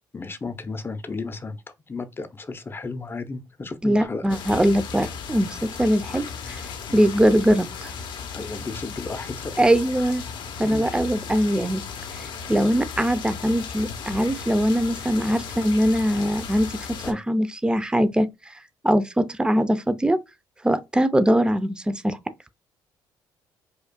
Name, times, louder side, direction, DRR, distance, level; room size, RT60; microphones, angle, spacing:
voice 1, 0.1-1.6 1.9-4.7 6.9-7.1 8.3-9.7 10.6-11.0 17.0-17.2, left 3 dB, 25° left, 0.7 m, -34 dB
voice 2, 3.8-6.6 6.9-7.9 9.6-10.2 10.6-11.8 12.5-16.7 17.1-18.3 18.8-20.2 20.6-22.2, equal, 10° right, 0.5 m, -21 dB
sound 1, 4.3-17.1, left 6 dB, 70° left, 0.8 m, -36 dB
5.1 x 2.3 x 2.2 m
supercardioid pair, 75°, 8 cm